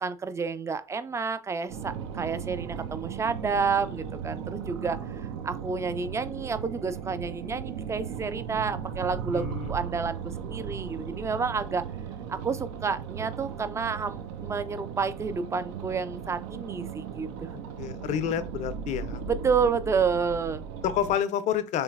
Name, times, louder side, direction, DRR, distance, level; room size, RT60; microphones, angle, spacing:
voice 1, 0.0-11.9 12.3-17.5 19.3-20.6, right 5 dB, 20° right, 0.4 m, -30 dB
sound 1, 1.7-21.2, right 7 dB, 70° right, 0.5 m, -37 dB
voice 2, 9.3-9.7 17.8-19.2 20.8-21.8, left 9 dB, 50° left, 0.5 m, -29 dB
3.2 x 3.0 x 2.3 m
hypercardioid pair, 65°, 16 cm